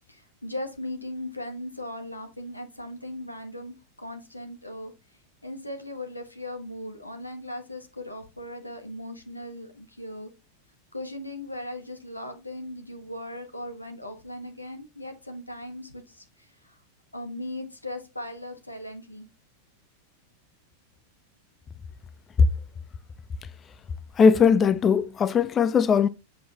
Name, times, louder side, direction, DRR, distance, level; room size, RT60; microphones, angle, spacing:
voice 1, 0.1-4.9 5.4-10.3 10.9-16.8 17.1-19.3, left 1 dB, 85° left, 1.4 m, -38 dB
voice 2, 24.2-26.1, left 6 dB, 25° left, 0.4 m, -19 dB
7.6 x 5.4 x 2.9 m
figure-of-eight pair, 90°, 0 cm